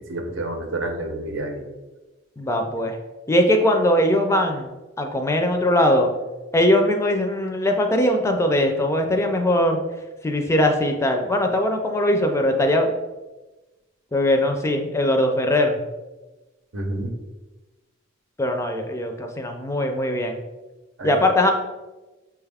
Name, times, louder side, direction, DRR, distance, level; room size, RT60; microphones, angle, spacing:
voice 1, 0.0-1.7 16.7-17.1 21.0-21.2, right 2 dB, 80° right, 3 dB, 0.7 m, -29 dB
voice 2, 2.4-3.0 3.3-4.7 5.0-6.1 6.5-9.8 10.2-12.9 14.1-15.9 18.4-20.4 21.0-21.5, left 1 dB, 15° left, 4 dB, 0.4 m, -20 dB
5.9 x 2.3 x 3.3 m, 1.1 s
head